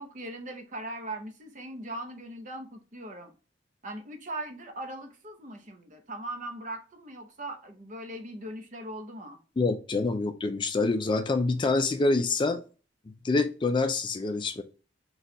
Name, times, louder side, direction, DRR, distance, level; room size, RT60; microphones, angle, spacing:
voice 1, 0.0-3.3 3.8-9.4, right 1 dB, 40° right, 0.7 m, -40 dB
voice 2, 9.6-12.6 13.1-14.6, left 3 dB, 25° left, 0.3 m, -26 dB
4.1 x 2.3 x 3.7 m
head